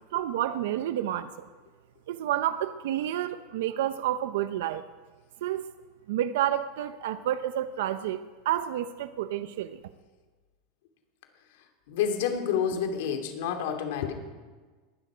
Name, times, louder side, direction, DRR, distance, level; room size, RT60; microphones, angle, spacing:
voice 1, 0.1-1.5 2.1-4.8 5.4-5.6 6.1-9.8, right 12 dB, 80° right, 12 dB, 0.7 m, -30 dB
voice 2, 11.9-14.1, left 8 dB, 70° left, 5 dB, 2.6 m, -29 dB
21.0 x 12.5 x 5.1 m, 1.4 s
supercardioid pair, 155°, 0 cm